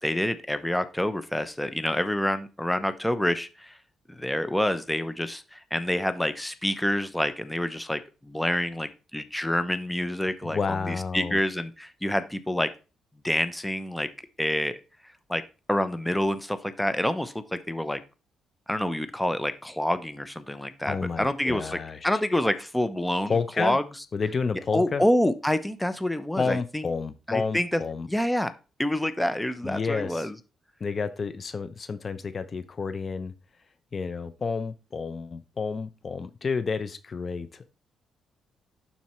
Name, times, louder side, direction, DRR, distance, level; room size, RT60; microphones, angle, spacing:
voice 1, 0.0-3.8 4.1-12.7 13.2-14.1 14.4-14.8 15.3-15.4 15.7-18.0 18.7-23.8 24.7-26.9 27.3-27.8 28.1-28.5 28.8-30.3, left 1 dB, 5° left, 11 dB, 0.7 m, -27 dB
voice 2, 10.4-11.4 20.9-22.1 23.3-23.8 24.1-25.0 26.4-28.1 29.6-30.3 30.8-33.3 33.9-37.7, left 5 dB, 40° left, 12 dB, 0.6 m, -30 dB
11.5 x 4.2 x 3.1 m, 0.31 s
cardioid pair, 90°, 0 cm